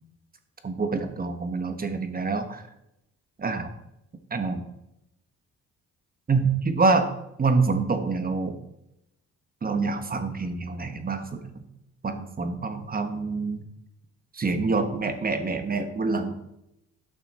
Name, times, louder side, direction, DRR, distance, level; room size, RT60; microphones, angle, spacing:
voice 1, 0.6-2.6 3.4-3.6 4.3-4.6 6.3-7.1 7.4-8.6 9.6-11.6 12.0-13.6 14.3-16.3, right 4 dB, 30° right, 7 dB, 1.3 m, -26 dB
12.5 x 5.7 x 4.3 m, 0.85 s
cardioid pair, 90°, 30 cm